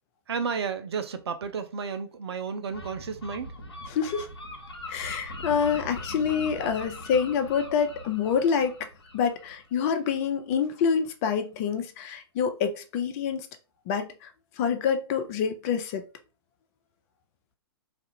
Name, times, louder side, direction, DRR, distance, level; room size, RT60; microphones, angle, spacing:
voice 1, 0.3-3.5, right 6 dB, 75° right, 0.4 m, -32 dB
Gull seagull, 2.7-10.2, left 1 dB, 80° left, 0.8 m, -41 dB
voice 2, 3.9-4.3 4.9-8.9 9.1-13.5 13.9-14.3 14.6-16.0, left 7 dB, 35° left, 0.4 m, -27 dB
2.4 x 2.4 x 2.7 m
figure-of-eight pair, 115°, 14 cm